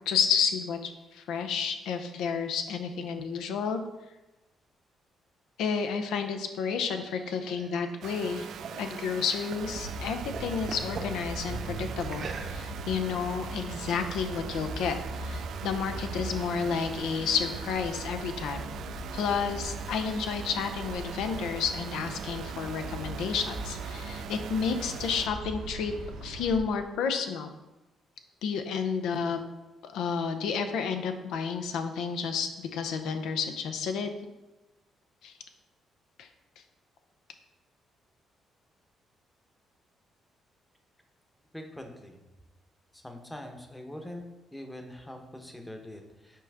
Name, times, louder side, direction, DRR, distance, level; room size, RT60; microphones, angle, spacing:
voice 1, 0.0-3.8 5.6-8.5 8.8-18.7 19.1-25.9 26.2-27.5 28.4-29.4 29.9-34.1 35.2-35.3 36.2-36.3, left 6 dB, 85° left, 7 dB, 0.6 m, -31 dB
sound 1, 6.4-9.8 10.1-11.1 12.0-12.9, right 4 dB, 55° right, 0.7 m, -43 dB
sound 2, 8.0-25.3, right 8 dB, 70° right, 0.3 m, -42 dB
sound 3, 9.6-26.6, right 2 dB, 85° right, 0.8 m, -40 dB
voice 2, 41.5-42.2 42.9-44.2 44.5-46.4, left 1 dB, 10° left, 4 dB, 0.9 m, -43 dB
6.0 x 4.6 x 3.5 m, 1.0 s
cardioid pair, 90°, 0 cm